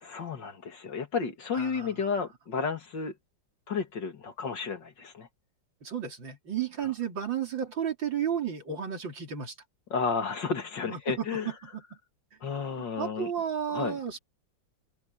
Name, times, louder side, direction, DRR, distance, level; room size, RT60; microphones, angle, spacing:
voice 1, 0.0-3.1 3.7-5.3 9.9-11.5 12.4-13.3 13.7-14.0, left 5 dB, 65° left, 2.9 m, -32 dB
voice 2, 1.5-1.9 5.8-9.5 10.9-11.3 11.7-11.8 13.0-14.2, right 8 dB, 70° right, 4.0 m, -32 dB
omnidirectional pair, 2.2 m